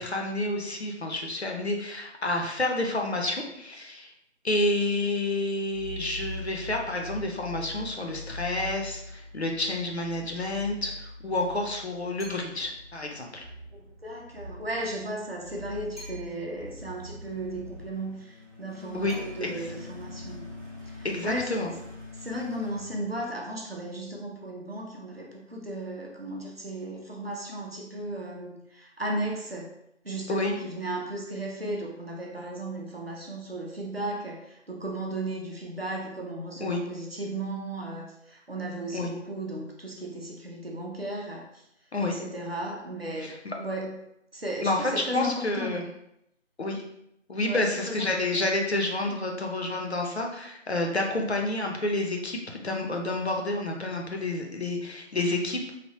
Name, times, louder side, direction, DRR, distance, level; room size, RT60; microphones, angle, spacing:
voice 1, 0.0-4.1 4.4-13.4 18.9-19.1 19.4-19.7 21.0-21.7 30.3-30.6 36.6-36.8 38.9-39.1 41.9-42.1 43.2-43.5 44.6-45.9 46.6-46.8 47.3-55.7, left 2 dB, 60° left, 2 dB, 0.6 m, -29 dB
sound 1, 5.6-23.8, left 2 dB, 80° right, 0.9 m, -43 dB
sound 2, 12.2-12.8 16.0-16.7 19.1-19.9, right 1 dB, ahead, 0.6 m, -49 dB
voice 2, 13.7-20.4 20.9-21.7 22.1-29.7 30.0-41.6 42.0-44.0 44.3-45.8 47.4-48.1 49.1-49.4, right 1 dB, 55° right, -1 dB, 0.7 m, -35 dB
3.3 x 2.0 x 2.8 m, 0.79 s
figure-of-eight pair, 175°, 37 cm